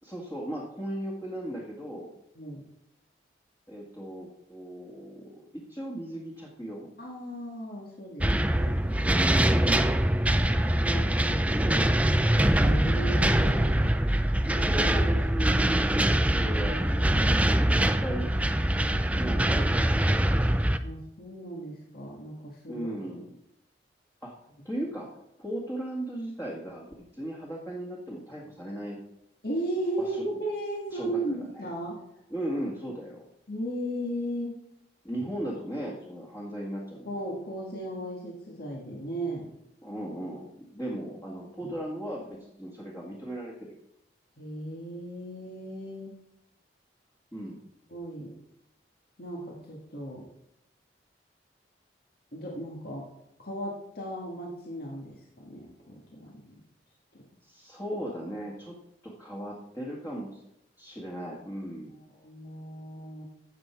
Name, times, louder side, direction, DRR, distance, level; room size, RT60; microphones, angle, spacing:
voice 1, 0.0-2.1 3.7-6.9 9.1-9.9 10.8-12.3 14.4-18.3 19.1-20.5 22.7-23.3 24.2-24.4 24.6-25.1 25.4-26.9 27.1-29.0 30.0-30.2 30.9-31.7 32.3-33.2 35.0-37.1 39.8-43.7 47.3-47.6 57.4-58.8 59.0-60.4 60.8-61.9, right 1 dB, 15° left, -4 dB, 1.9 m, -37 dB
voice 2, 7.0-8.8 12.6-13.9 20.8-23.1 29.4-32.0 33.5-34.6 37.1-39.5 41.6-41.7 44.4-46.1 47.9-48.3 49.2-50.2 52.3-53.1 53.4-56.5 57.1-57.2 61.9-63.3, right 1 dB, 60° left, -2 dB, 2.0 m, -36 dB
sound 1, 8.2-20.8, right 1 dB, 10° right, 0.5 m, -24 dB
13.0 x 8.1 x 4.6 m, 0.83 s
head